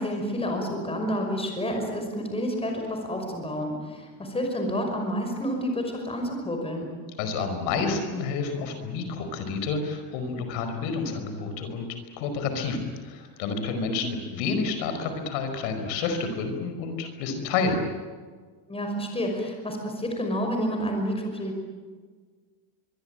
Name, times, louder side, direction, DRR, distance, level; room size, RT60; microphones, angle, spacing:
voice 1, 0.0-6.9 18.7-21.6, equal, 10° left, 3 dB, 5.6 m, -29 dB
voice 2, 7.2-11.9 12.1-17.8, left 4 dB, 80° left, 7 dB, 5.1 m, -29 dB
24.0 x 23.5 x 9.1 m, 1.5 s
cardioid pair, 150°, 50 cm